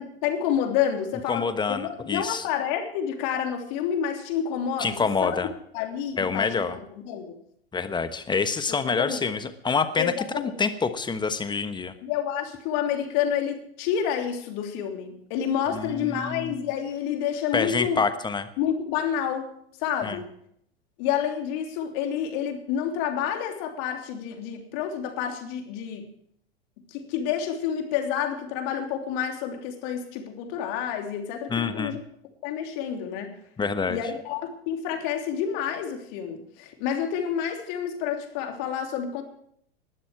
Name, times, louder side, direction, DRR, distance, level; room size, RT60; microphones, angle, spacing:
voice 1, 0.0-4.9 5.2-5.5 5.7-7.4 8.8-9.2 10.0-10.6 12.0-18.0 18.6-19.5 19.8-20.3 21.0-26.1 26.9-32.0 32.4-33.4 33.9-39.2, left 8 dB, 50° left, 4 dB, 3.1 m, -29 dB
voice 2, 1.3-2.5 4.8-5.5 6.2-6.8 7.7-10.1 10.6-11.9 15.7-16.6 17.5-18.5 20.0-20.2 31.5-32.0 33.6-34.0, left 5 dB, 15° left, 10 dB, 1.3 m, -27 dB
19.5 x 12.5 x 4.7 m, 0.70 s
figure-of-eight pair, 90°, 31 cm